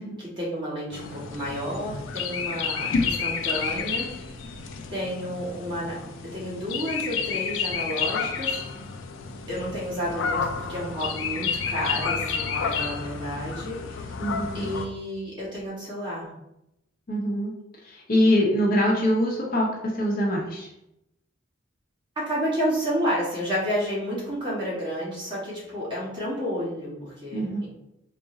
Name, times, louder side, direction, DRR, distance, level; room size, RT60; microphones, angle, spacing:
voice 1, 0.0-4.1 4.9-8.6 9.5-14.1 14.5-16.3 22.1-27.7, equal, 25° right, -7 dB, 1.4 m, -31 dB
sound 1, 0.9-14.9, left 5 dB, 90° left, 0.4 m, -30 dB
voice 2, 14.2-14.7 17.1-17.5 17.8-20.7 27.3-27.6, equal, 50° left, -2 dB, 0.8 m, -24 dB
3.9 x 2.0 x 3.6 m, 0.86 s
head